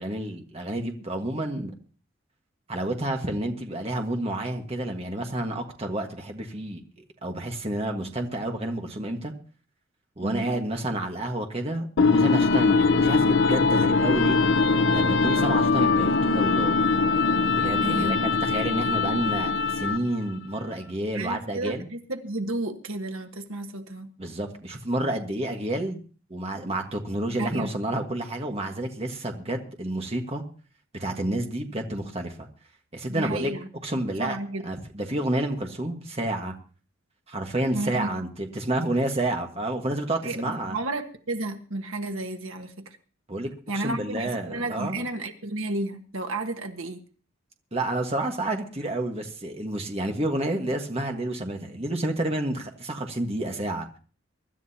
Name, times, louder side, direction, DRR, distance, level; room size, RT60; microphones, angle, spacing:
voice 1, 0.0-1.7 2.7-9.3 10.2-14.4 14.9-16.8 17.6-21.9 24.2-26.0 26.3-30.4 30.9-32.5 32.9-33.5 33.8-34.4 34.6-36.5 37.3-40.8 43.3-45.0 47.7-53.9, right 1 dB, 30° right, 3 dB, 1.6 m, -30 dB
voice 2, 10.2-10.6 17.8-18.2 21.1-24.1 27.4-27.7 33.1-33.7 34.2-34.7 37.7-38.1 40.2-43.0 43.7-47.0, right 2 dB, 85° right, 5 dB, 1.5 m, -32 dB
sound 1, 12.0-20.2, left 4 dB, 70° left, 0.7 m, -22 dB
24.0 x 12.0 x 2.9 m, 0.39 s
head